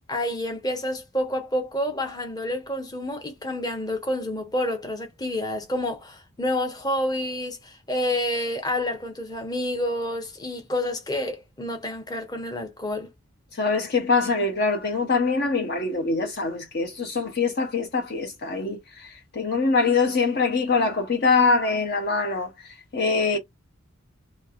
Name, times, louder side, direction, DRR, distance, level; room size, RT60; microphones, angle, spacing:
voice 1, 0.1-13.1, left 1 dB, 20° left, 0.9 m, -29 dB
voice 2, 13.5-23.4, left 4 dB, 50° left, 0.7 m, -24 dB
3.1 x 2.7 x 2.4 m
head